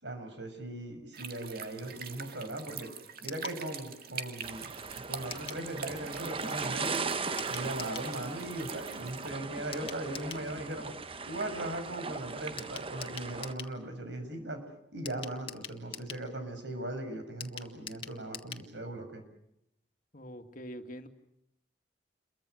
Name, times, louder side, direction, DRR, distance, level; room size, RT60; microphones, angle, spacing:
voice 1, 0.0-2.9 3.2-4.7 5.1-7.0 7.4-10.9 11.3-14.6 14.9-19.2, right 1 dB, 75° right, 6 dB, 6.7 m, -39 dB
sound 1, 1.1-9.3, right 6 dB, 55° right, 1.9 m, -44 dB
sound 2, 3.3-3.6 5.3-5.7 7.4-8.1 9.7-10.5 12.6-13.8 15.1-16.3 17.4-18.7 19.0-19.1 19.3-19.4, left 7 dB, 30° left, 1.9 m, -44 dB
sound 3, 4.4-13.5, right 4 dB, 30° right, 1.0 m, -38 dB
voice 2, 20.1-21.1, equal, 50° left, 6 dB, 2.3 m, -44 dB
29.5 x 23.0 x 6.6 m, 0.80 s
head